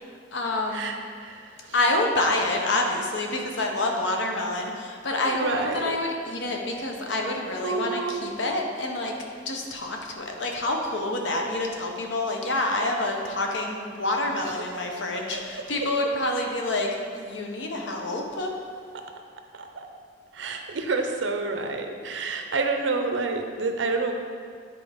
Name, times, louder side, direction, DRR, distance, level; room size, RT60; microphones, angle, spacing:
voice 1, 0.0-0.9 1.7-9.1 9.4-18.5, left 2 dB, 75° left, 1 dB, 0.9 m, -27 dB
voice 2, 0.7-1.8 5.3-6.0 7.6-8.3 14.4-14.8 15.3-15.9 19.5-19.9 20.3-24.1, right 3 dB, 80° right, 4 dB, 0.6 m, -29 dB
8.7 x 4.5 x 3.5 m, 2.2 s
head